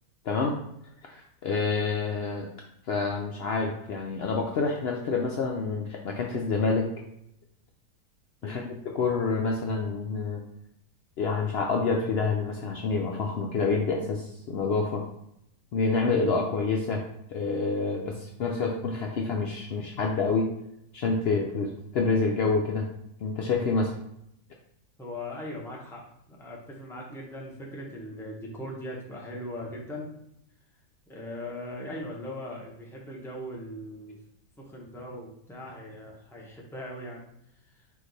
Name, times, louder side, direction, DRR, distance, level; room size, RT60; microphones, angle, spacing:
voice 1, 1.1-2.5 2.9-6.9 8.4-10.4 11.2-15.0 15.7-17.0 17.3-20.5 20.9-22.8 23.2-23.9, left 4 dB, 90° left, 0 dB, 0.5 m, -27 dB
voice 2, 25.0-30.1 31.1-34.2 34.6-37.2 37.6-37.9, left 1 dB, 5° left, -2 dB, 0.5 m, -39 dB
4.7 x 2.5 x 3.9 m, 0.78 s
omnidirectional pair, 1.6 m